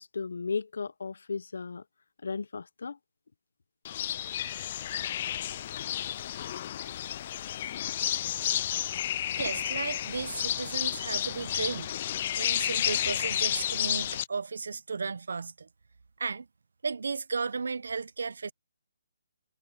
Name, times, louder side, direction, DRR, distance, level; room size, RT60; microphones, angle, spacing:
voice 1, 0.0-1.8 2.2-3.0, left 4 dB, 65° left, 0.9 m, -35 dB
sound 1, 3.8-14.3, left 11 dB, 25° left, 0.4 m, -31 dB
voice 2, 9.3-11.9 12.4-15.7 16.2-16.5 16.8-18.5, right 4 dB, 65° right, 0.8 m, -34 dB
hypercardioid pair, 175°, 0 cm